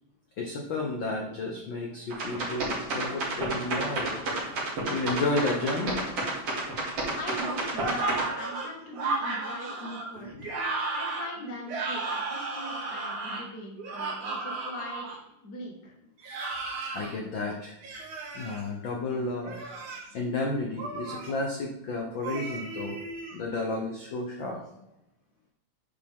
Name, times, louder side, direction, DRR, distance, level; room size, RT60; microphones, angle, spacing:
voice 1, 0.4-4.2 4.8-6.1 10.3-10.5 16.9-17.8 18.3-19.6 19.8-23.0 23.3-24.6, left 2 dB, 75° left, 0 dB, 1.1 m, -32 dB
sound 1, 2.1-8.2, right 2 dB, 50° right, 3.5 m, -30 dB
voice 2, 7.1-10.3 10.9-15.1 15.4-15.9 16.2-16.3, left 1 dB, 35° left, -1 dB, 2.1 m, -40 dB
sound 2, 7.3-15.2 16.2-17.1 17.8-18.6 19.4-20.1 20.8-21.3 22.2-23.4, right 3 dB, 70° right, 3.3 m, -34 dB
10.0 x 5.4 x 3.7 m, 0.86 s
omnidirectional pair, 3.7 m